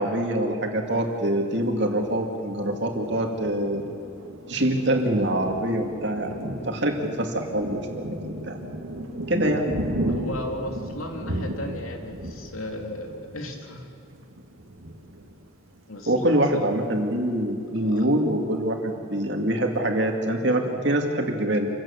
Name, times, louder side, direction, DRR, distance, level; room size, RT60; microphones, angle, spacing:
voice 1, 0.0-3.9 4.5-8.6 9.3-9.7 16.1-21.7, right 1 dB, 55° right, 3 dB, 2.5 m, -25 dB
Thunder, 2.0-16.3 16.8-16.9 17.2-17.8, right 1 dB, 80° right, 2.2 m, -35 dB
voice 2, 10.1-13.9 15.9-16.1 16.5-16.6 17.8-18.1, left 1 dB, 85° left, 3 dB, 2.9 m, -35 dB
27.5 x 16.5 x 7.3 m, 2.5 s
head